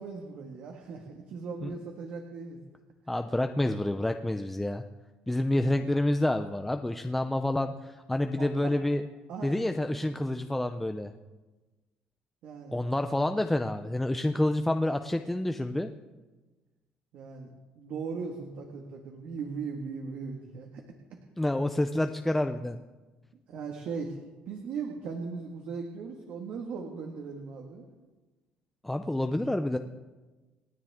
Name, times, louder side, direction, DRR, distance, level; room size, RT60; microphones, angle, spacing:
voice 1, 0.0-2.6 8.4-8.7 9.3-9.6 12.4-12.8 17.1-17.5 17.8-20.8 23.5-24.2 24.5-27.9, right 5 dB, 60° right, 2 dB, 1.8 m, -38 dB
voice 2, 3.1-4.8 5.3-9.0 9.4-11.1 12.7-15.9 21.4-22.8 28.8-29.8, left 1 dB, 5° left, 6 dB, 0.5 m, -28 dB
28.5 x 10.0 x 3.6 m, 1.2 s
cardioid pair, 155°, 3 cm